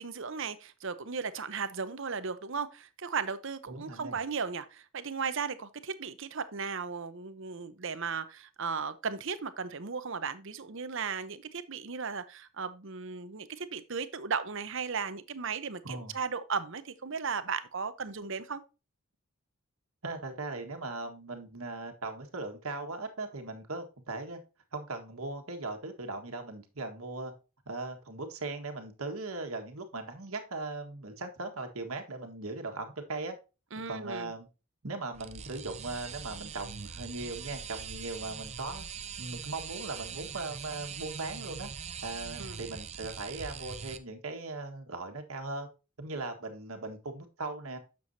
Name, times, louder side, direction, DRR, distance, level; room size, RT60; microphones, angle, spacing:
voice 1, 0.0-18.6 33.7-34.3 42.4-42.6, right 5 dB, 60° right, 0.8 m, -36 dB
voice 2, 3.7-4.2 15.8-16.1 20.0-24.4 24.7-27.3 27.7-33.4 33.9-34.5 34.8-38.8 39.2-41.7 42.0-45.7 46.0-47.8, right 3 dB, 75° right, 1.6 m, -39 dB
sound 1, 35.1-44.0, right 6 dB, 30° right, 0.6 m, -42 dB
9.5 x 7.0 x 2.7 m
head